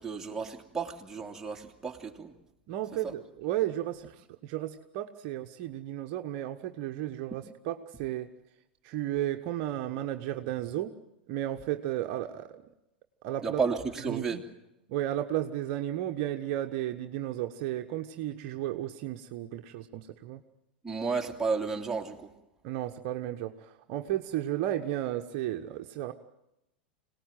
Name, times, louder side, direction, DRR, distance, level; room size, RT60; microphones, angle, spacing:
voice 1, 0.0-2.3 3.0-3.1 13.4-14.4 20.8-22.3, right 5 dB, 10° right, 1 dB, 2.8 m, -32 dB
voice 2, 2.7-8.3 8.8-10.9 11.3-12.6 13.2-13.6 14.0-14.4 14.9-20.4 22.6-26.1, right 13 dB, 50° right, 6 dB, 1.2 m, -33 dB
26.0 x 18.5 x 9.2 m, 0.87 s
figure-of-eight pair, 95°, 6 cm